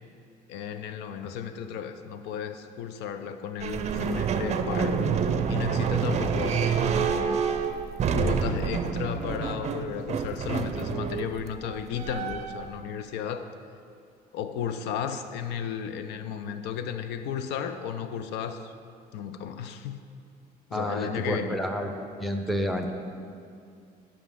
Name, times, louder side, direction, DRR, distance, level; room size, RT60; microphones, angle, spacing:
voice 1, 0.5-5.0 5.5-7.4 8.1-13.5 14.3-18.7 19.1-20.0 20.7-21.6, left 8 dB, 90° left, 9 dB, 0.5 m, -34 dB
sound 1, 3.6-12.7, right 6 dB, 40° right, 0.5 m, -28 dB
voice 2, 20.7-21.9 22.2-22.9, equal, ahead, 4 dB, 0.7 m, -29 dB
11.5 x 5.6 x 3.6 m, 2.4 s
cardioid pair, 110°, 17 cm